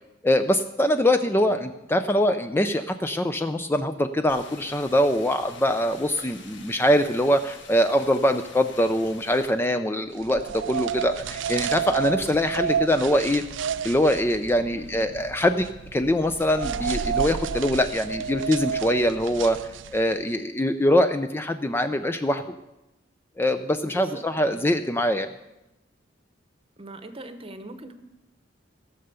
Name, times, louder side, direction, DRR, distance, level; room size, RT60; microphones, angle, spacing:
voice 1, 0.2-13.4 13.8-19.6 19.9-22.4 23.4-25.3, left 1 dB, 10° left, 8 dB, 0.4 m, -23 dB
voice 2, 1.2-1.7 14.7-15.0 23.8-24.2 24.5-24.7 26.8-27.9, right 2 dB, 30° right, 9 dB, 0.9 m, -41 dB
sound 1, 4.3-9.5, left 4 dB, 65° left, 1.7 m, -46 dB
sound 2, 10.2-20.2, right 7 dB, 75° right, 0.4 m, -31 dB
16.0 x 6.8 x 6.8 m, 0.95 s
head